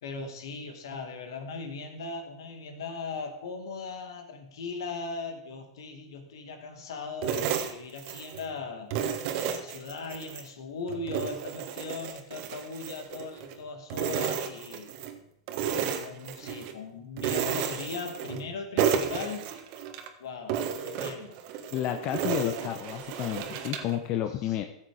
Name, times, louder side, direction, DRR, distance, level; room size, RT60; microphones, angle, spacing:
voice 1, 0.0-9.0 9.4-14.9 15.7-19.5 20.2-21.4 24.4-24.6, left 4 dB, 75° left, 5 dB, 2.3 m, -39 dB
sound 1, 7.2-8.5 8.9-10.5 10.9-13.6 13.9-15.1 15.5-16.7 17.2-18.5 18.8-20.1 20.5-24.0, right 8 dB, 55° right, 1.5 m, -32 dB
voice 2, 21.7-24.6, left 11 dB, 45° left, 6 dB, 1.0 m, -31 dB
15.0 x 7.7 x 5.0 m, 0.74 s
hypercardioid pair, 105°, 2 cm